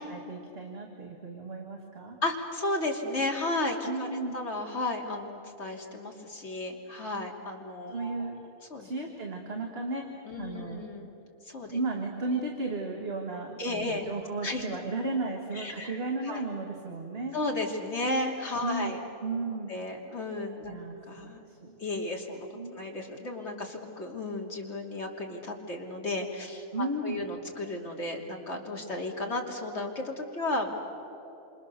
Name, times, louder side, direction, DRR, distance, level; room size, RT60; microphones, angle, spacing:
voice 1, 0.0-2.2 3.9-4.4 7.9-8.4 8.8-10.8 11.7-17.4 18.6-19.7 20.7-21.0 21.2-21.8 22.5-22.7 26.7-27.2, right 3 dB, 40° right, 1 dB, 2.2 m, -34 dB
voice 2, 2.2-8.3 8.7-8.9 10.2-11.1 11.4-11.8 13.6-14.1 14.4-14.6 15.5-16.0 16.2-16.4 17.3-19.0 19.7-20.8 21.1-21.4 21.8-30.9, left 2 dB, 45° left, 0 dB, 3.2 m, -34 dB
28.0 x 27.0 x 6.9 m, 3.0 s
omnidirectional pair, 1.6 m